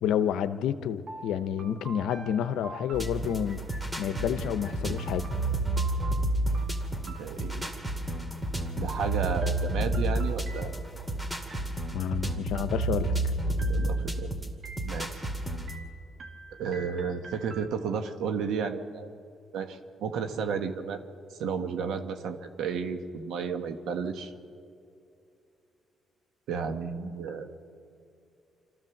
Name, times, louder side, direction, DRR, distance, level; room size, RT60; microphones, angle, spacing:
voice 1, 0.0-3.6 4.0-5.3 11.9-13.3, left 9 dB, 85° left, 12 dB, 0.8 m, -29 dB
sound 1, 1.1-3.8 5.0-8.0 8.9-11.1 11.5-12.1 12.5-13.2 13.6-14.2 14.6-15.3 15.7-18.2, right 4 dB, 50° right, 1.8 m, -47 dB
sound 2, 2.9-15.8, right 1 dB, 15° right, 2.4 m, -31 dB
voice 2, 7.0-7.7 8.8-10.7 13.7-14.3 14.8-15.3 16.6-19.1 19.5-21.0 21.4-24.3 26.5-27.5, right 6 dB, 80° right, 7 dB, 1.5 m, -32 dB
26.0 x 14.0 x 7.2 m, 2.5 s
cardioid pair, 90°, 0 cm